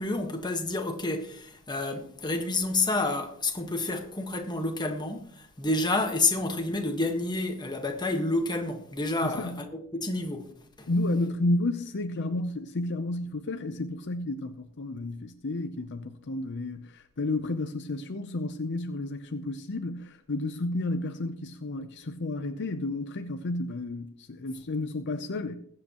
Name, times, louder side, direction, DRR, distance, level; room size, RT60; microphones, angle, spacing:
voice 1, 0.0-10.5 10.8-10.9, left 2 dB, 20° left, 1.4 m, -29 dB
voice 2, 9.2-9.6 10.9-25.6, left 2 dB, 55° left, 0.7 m, -31 dB
21.0 x 7.8 x 3.0 m
head